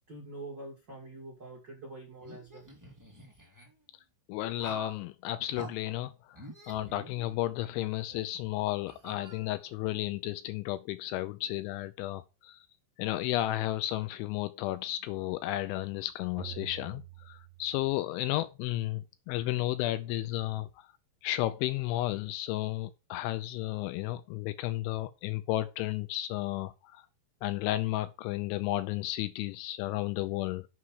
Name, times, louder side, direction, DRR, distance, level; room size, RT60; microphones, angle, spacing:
voice 1, 0.1-2.7, right 2 dB, 35° right, 1.8 m, -45 dB
sound 1, 2.2-3.7 4.6-5.0 5.5-5.7 6.3-7.6 8.1-8.2 8.9-9.8, right 1 dB, 10° right, 1.0 m, -47 dB
voice 2, 4.3-6.4 6.7-12.6 13.0-20.7 21.2-27.0 27.4-30.7, left 15 dB, 80° left, 2.9 m, -33 dB
sound 2, 16.4-18.3, right 16 dB, 75° right, 2.1 m, -47 dB
7.3 x 5.6 x 6.3 m
omnidirectional pair, 5.6 m